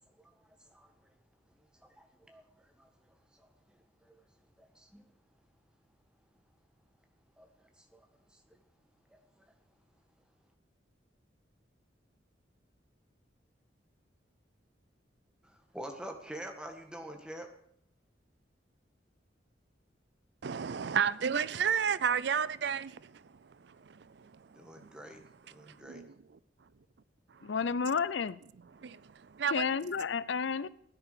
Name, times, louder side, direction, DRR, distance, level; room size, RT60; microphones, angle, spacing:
voice 1, 0.1-0.9 1.5-4.3 4.6-5.1 7.4-8.6 9.1-9.4 15.4-17.5 24.6-26.0, right 1 dB, 5° right, 1.8 m, -48 dB
voice 2, 20.4-24.9 25.7-26.1 28.8-29.6, right 7 dB, 65° right, 0.4 m, -33 dB
voice 3, 27.4-28.4 29.5-30.7, left 5 dB, 75° left, 0.5 m, -31 dB
15.5 x 10.0 x 6.8 m
head